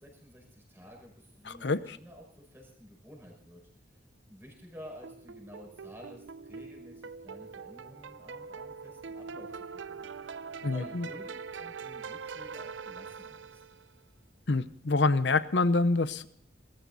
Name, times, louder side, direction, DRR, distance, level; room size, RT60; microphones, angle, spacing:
voice 1, 0.0-3.6 4.3-10.1 10.6-13.6, equal, 10° right, -1 dB, 5.8 m, -51 dB
voice 2, 1.5-2.0 10.6-11.1 14.5-16.3, left 3 dB, 65° left, 14 dB, 0.8 m, -26 dB
sound 1, 5.0-13.9, right 5 dB, 75° right, 0.5 m, -43 dB
19.5 x 14.5 x 4.1 m, 0.70 s
head